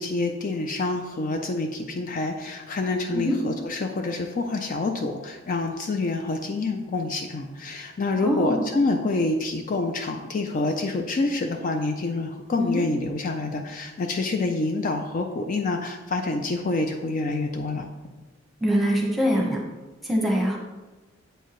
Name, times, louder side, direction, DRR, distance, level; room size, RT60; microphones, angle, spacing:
voice 1, 0.0-17.9, left 3 dB, 40° left, 4 dB, 0.4 m, -27 dB
voice 2, 8.2-8.6 12.6-12.9 18.6-19.6 20.0-20.6, equal, ahead, -1 dB, 1.0 m, -23 dB
7.8 x 4.6 x 3.0 m, 1.1 s
head